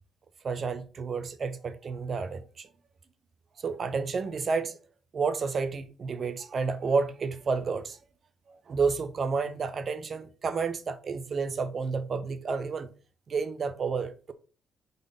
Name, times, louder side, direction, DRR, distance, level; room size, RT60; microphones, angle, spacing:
voice 1, 0.4-2.7 3.6-4.8 5.1-8.0 8.5-12.9 13.3-14.3, right 5 dB, 45° right, 0.8 m, -30 dB
5.0 x 4.1 x 5.6 m
cardioid pair, 90°, 0 cm